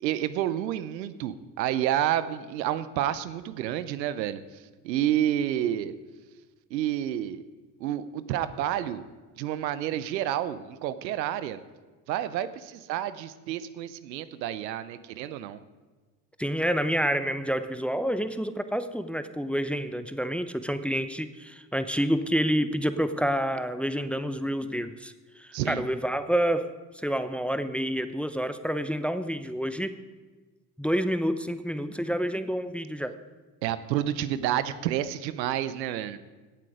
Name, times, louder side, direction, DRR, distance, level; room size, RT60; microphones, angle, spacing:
voice 1, 0.0-4.4 4.8-5.9 6.7-7.4 7.8-9.1 9.4-11.6 12.1-15.6 25.5-25.8 33.6-36.2, right 11 dB, 90° right, 14 dB, 0.7 m, -29 dB
voice 2, 16.4-30.0 30.8-33.2, equal, ahead, 11 dB, 0.7 m, -28 dB
17.0 x 7.9 x 4.9 m, 1.3 s
hypercardioid pair, 65°, 50 cm